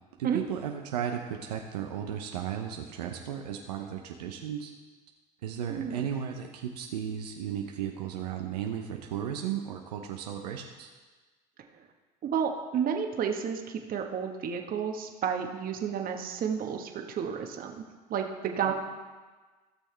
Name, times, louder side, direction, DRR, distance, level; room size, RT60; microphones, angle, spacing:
voice 1, 0.2-4.7 5.4-10.9 18.6-18.7, right 9 dB, 85° right, 2 dB, 0.8 m, -35 dB
voice 2, 5.7-6.1 12.2-17.8 18.1-18.7, right 7 dB, 45° right, 4 dB, 1.3 m, -31 dB
15.5 x 6.3 x 3.4 m, 1.3 s
hypercardioid pair, 80°, 20 cm